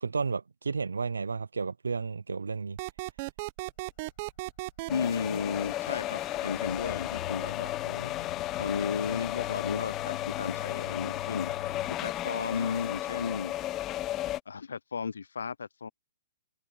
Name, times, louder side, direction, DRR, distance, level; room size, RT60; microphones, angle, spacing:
voice 1, 0.0-2.8, right 4 dB, 90° right, 0.4 m, -32 dB
sound 1, 2.8-4.9, right 22 dB, 40° right, 0.9 m, -36 dB
sound 2, 4.1-12.0, left 11 dB, 55° left, 6.4 m, -44 dB
voice 2, 4.9-8.1 8.6-13.7 14.5-15.9, left 5 dB, 80° left, 0.5 m, -34 dB
sound 3, 4.9-14.4, left 14 dB, 25° left, 0.8 m, -34 dB
hypercardioid pair, 135°, 0 cm